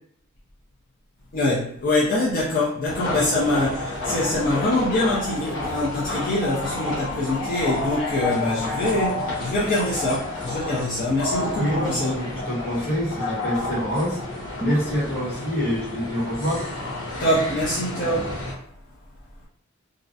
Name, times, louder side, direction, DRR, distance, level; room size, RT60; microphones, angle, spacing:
voice 1, 1.3-12.2 17.2-18.4, left 1 dB, 40° left, 0.5 m, -24 dB
sound 1, 2.9-18.5, left 2 dB, 90° left, 1.0 m, -30 dB
voice 2, 11.4-14.2 14.6-16.6, equal, 70° left, 1.3 m, -26 dB
2.4 x 2.1 x 2.6 m
head